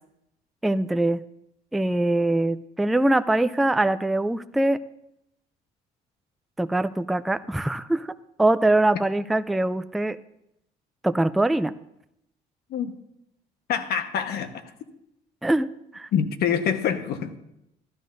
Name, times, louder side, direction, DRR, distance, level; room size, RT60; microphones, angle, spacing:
voice 1, 0.6-1.2 1.7-4.8 6.6-8.1 8.4-10.2 11.0-11.7 15.4-15.7 15.9-16.1, right 2 dB, ahead, 12 dB, 0.3 m, -23 dB
voice 2, 13.7-14.7 16.1-17.3, left 8 dB, 70° left, 8 dB, 1.1 m, -26 dB
15.5 x 12.0 x 2.6 m, 0.80 s
cardioid pair, 110°, 17 cm